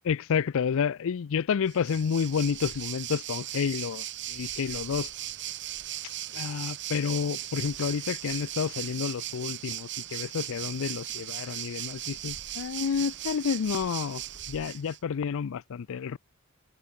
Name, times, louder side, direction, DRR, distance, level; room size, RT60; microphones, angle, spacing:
voice 1, 0.0-5.1 6.3-14.2 14.5-16.2, left 6 dB, 65° left, 0.4 m, -30 dB
Waves surf, 1.7-15.0, right 13 dB, 55° right, 2.5 m, -37 dB
head